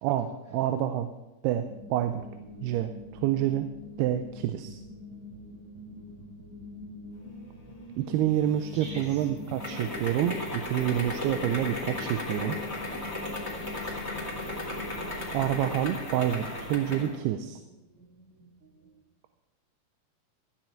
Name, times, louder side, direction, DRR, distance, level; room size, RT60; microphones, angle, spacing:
voice 1, 0.0-1.1 1.4-2.3 2.6-2.9 3.2-3.7 4.0-4.8 8.0-12.6 15.3-17.6, right 12 dB, 85° right, 9 dB, 2.6 m, -28 dB
sound 1, 1.7-19.0, left 2 dB, 55° right, 2.6 m, -46 dB
sound 2, 8.3-17.1, left 2 dB, 5° right, 3.1 m, -35 dB
voice 2, 8.7-9.3 13.6-14.7, equal, 70° left, 0 dB, 0.7 m, -46 dB
14.5 x 12.0 x 4.5 m, 1.0 s
omnidirectional pair, 4.5 m